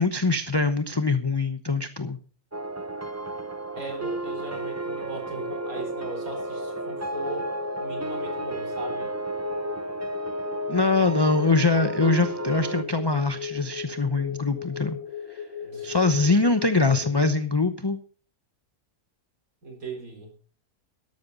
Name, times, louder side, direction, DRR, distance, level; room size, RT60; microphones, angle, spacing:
voice 1, 0.0-2.2 10.7-15.0 15.3-15.4 15.8-18.0, left 3 dB, 20° left, 9 dB, 0.8 m, -23 dB
sound 1, 2.5-12.8, right 2 dB, 20° right, 0.4 m, -33 dB
voice 2, 3.7-7.5 7.8-9.1 15.6-16.0 16.2-16.3 19.6-20.3, right 3 dB, 75° right, 2 dB, 4.6 m, -38 dB
sound 2, 5.3-17.3, left 7 dB, 65° left, 1.4 m, -38 dB
13.5 x 12.0 x 4.0 m, 0.40 s
omnidirectional pair, 1.5 m